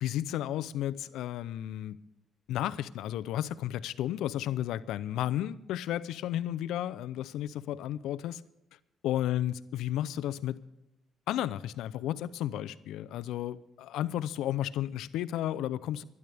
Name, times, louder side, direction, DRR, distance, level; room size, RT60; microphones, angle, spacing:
voice 1, 0.0-2.0 2.5-8.4 9.0-10.6 11.3-16.0, left 12 dB, 85° left, 0.5 m, -33 dB
25.0 x 11.0 x 3.4 m
cardioid pair, 90°, 0 cm